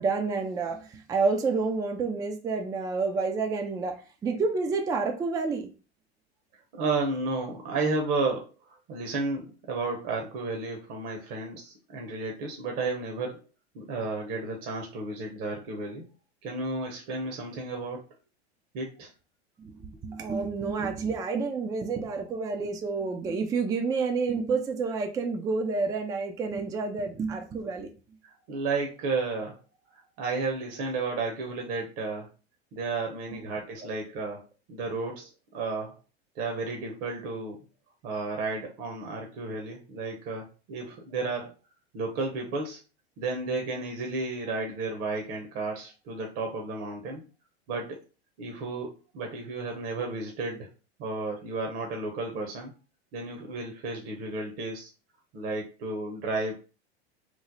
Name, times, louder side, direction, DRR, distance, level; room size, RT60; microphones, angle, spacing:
voice 1, 0.0-5.7 19.6-27.9, right 4 dB, 10° right, 0.3 m, -29 dB
voice 2, 6.7-8.5 8.9-13.4 13.7-16.1 16.4-18.0 18.7-19.1 28.2-29.6 30.2-32.3 32.7-36.0 36.4-37.6 38.0-41.5 41.9-42.8 43.2-47.2 47.7-48.0 48.4-50.7 51.0-52.7 53.1-54.9 55.3-56.7, right 3 dB, 45° right, 0.8 m, -32 dB
3.1 x 2.0 x 3.8 m
hypercardioid pair, 110°, 33 cm